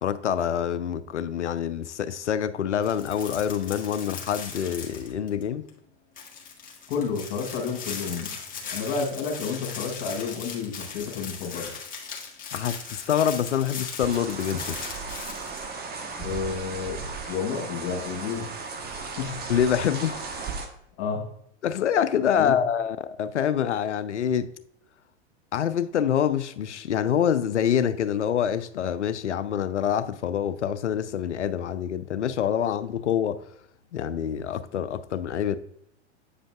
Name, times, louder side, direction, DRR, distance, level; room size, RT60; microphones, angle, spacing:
voice 1, 0.0-5.7 12.5-14.8 19.5-20.2 21.6-24.5 25.5-33.4 33.9-35.6, left 9 dB, 85° left, 0.6 m, -26 dB
sound 1, 2.8-5.4 5.7-5.8 6.2-15.6, left 6 dB, 25° left, 1.6 m, -38 dB
voice 2, 6.9-8.3 8.6-11.7 16.2-18.5 19.2-19.3 21.0-21.2 22.4-22.6, left 5 dB, 55° left, 2.2 m, -30 dB
sound 2, 14.0-20.7, right 4 dB, 25° right, 1.1 m, -36 dB
8.3 x 5.1 x 2.4 m
hypercardioid pair, 95°, 34 cm